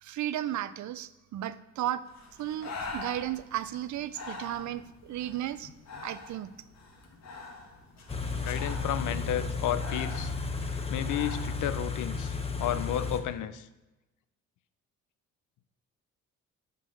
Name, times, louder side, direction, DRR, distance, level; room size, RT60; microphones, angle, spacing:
voice 1, 0.0-2.1 2.4-5.7 6.0-6.5, right 12 dB, 70° right, 15 dB, 0.6 m, -34 dB
Breathing, 2.1-11.6, left 3 dB, 60° left, 2.3 m, -44 dB
Car / Idling, 8.1-13.2, left 4 dB, 20° left, 1.2 m, -33 dB
voice 2, 8.4-10.3 10.9-13.7, left 11 dB, 80° left, 12 dB, 0.7 m, -32 dB
9.9 x 5.4 x 6.5 m, 1.0 s
cardioid pair, 90°, 30 cm